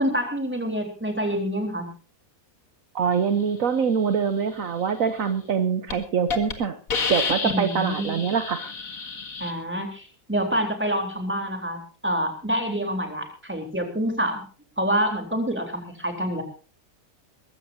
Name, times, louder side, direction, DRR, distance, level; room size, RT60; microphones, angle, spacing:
voice 1, 0.0-1.9 7.4-8.2 9.4-14.4 14.8-16.4, equal, 5° right, 3 dB, 3.6 m, -27 dB
voice 2, 2.9-6.8 7.1-8.6, right 6 dB, 65° right, 10 dB, 1.3 m, -24 dB
Hiss, 5.3-5.5 5.9-6.0 6.3-6.5 6.9-9.5, left 5 dB, 65° left, 2.3 m, -29 dB
21.5 x 15.5 x 2.8 m, 0.36 s
omnidirectional pair, 1.6 m